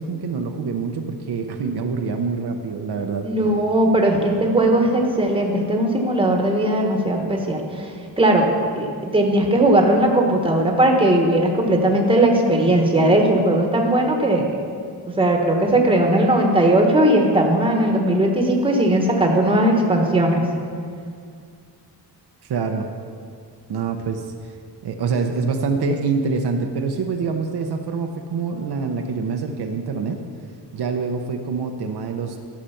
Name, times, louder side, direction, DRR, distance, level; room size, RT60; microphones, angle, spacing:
voice 1, 0.0-3.3 22.4-22.9 23.7-24.3 24.8-30.2 30.7-32.4, right 4 dB, 65° right, 4 dB, 0.8 m, -25 dB
voice 2, 3.2-7.9 8.2-8.5 8.8-14.6 15.2-20.4, right 1 dB, 10° right, 1 dB, 1.2 m, -18 dB
13.0 x 6.6 x 5.7 m, 2.1 s
wide cardioid pair, 160°, 43 cm